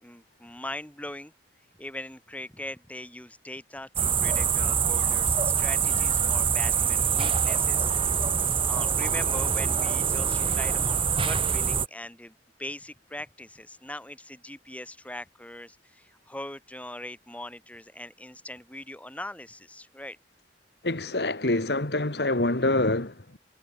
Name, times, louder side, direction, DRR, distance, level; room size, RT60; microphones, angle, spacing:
voice 1, 0.0-1.3 1.8-7.9 8.4-20.2, left 1 dB, 10° left, 5.3 m, -41 dB
sound 1, 4.0-11.9, right 7 dB, 30° right, 2.8 m, -25 dB
voice 2, 20.8-23.1, left 2 dB, 65° left, 2.0 m, -25 dB
head